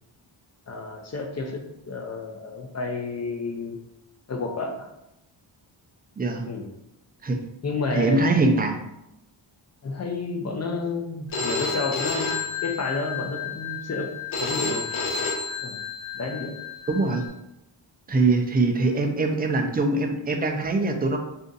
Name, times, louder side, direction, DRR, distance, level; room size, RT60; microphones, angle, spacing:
voice 1, 0.7-3.8 4.3-4.9 6.4-6.7 7.6-8.7 9.8-14.1 14.4-14.9 15.6-15.8 16.1-16.6, left 3 dB, 35° left, 3 dB, 0.5 m, -31 dB
voice 2, 6.2-6.5 7.2-7.4 7.9-8.8 16.9-17.2 18.1-21.2, right 3 dB, 20° right, 4 dB, 0.3 m, -22 dB
Telephone, 11.3-17.3, left 4 dB, 75° left, 0.7 m, -30 dB
2.6 x 2.5 x 3.8 m, 0.86 s
wide cardioid pair, 100°, 48 cm